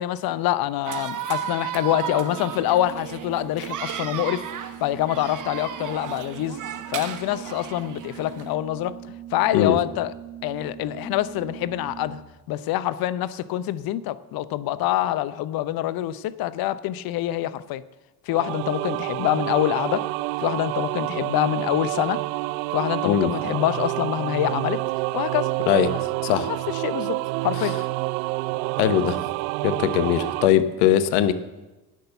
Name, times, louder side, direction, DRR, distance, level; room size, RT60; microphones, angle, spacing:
voice 1, 0.0-4.5 4.8-6.6 6.9-9.0 9.3-10.1 10.4-12.2 12.5-17.8 18.3-20.1 20.4-22.2 22.7-24.8 25.1-25.5 26.3-27.8, left 13 dB, 45° left, 17 dB, 0.7 m, -25 dB
sound 1, 0.9-8.5, right 9 dB, 40° right, 1.3 m, -34 dB
Organ, 2.2-12.5, right 11 dB, 20° left, 4.7 m, -41 dB
sound 2, 18.3-30.5, right 20 dB, 60° right, 0.5 m, -28 dB
voice 2, 28.8-29.2 29.6-31.3, left 10 dB, 65° left, 13 dB, 1.1 m, -20 dB
18.0 x 6.2 x 6.9 m, 1.1 s
hypercardioid pair, 65°, 49 cm